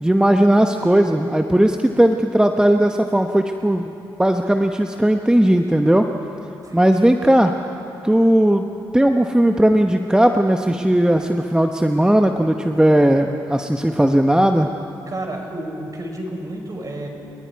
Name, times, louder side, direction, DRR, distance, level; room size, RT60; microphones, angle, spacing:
voice 1, 0.0-3.9 4.2-6.1 6.7-7.5 8.0-8.7 8.9-14.7, right 1 dB, 10° right, 5 dB, 1.1 m, -17 dB
voice 2, 6.6-7.0 15.1-17.1, right 1 dB, 40° right, 2 dB, 5.0 m, -31 dB
30.0 x 20.0 x 4.8 m, 2.8 s
supercardioid pair, 50°, 9 cm